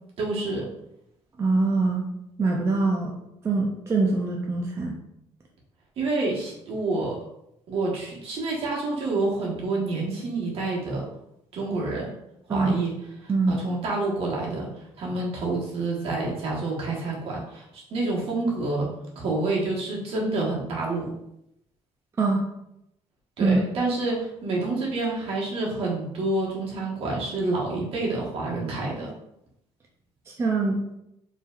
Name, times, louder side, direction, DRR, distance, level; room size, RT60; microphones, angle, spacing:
voice 1, 0.2-0.6 6.0-7.2 7.7-11.1 11.5-12.1 12.5-12.9 13.2-14.7 15.0-18.9 19.1-21.1 23.4-29.1, right 2 dB, 55° right, -3 dB, 1.3 m, -28 dB
voice 2, 1.4-2.1 2.4-3.1 3.4-5.0 12.5-12.8 13.3-13.6 22.2-22.4 23.4-23.6 30.3-30.8, right 3 dB, 25° right, -1 dB, 0.5 m, -23 dB
4.6 x 3.3 x 2.4 m, 0.82 s
cardioid pair, 140°, 11 cm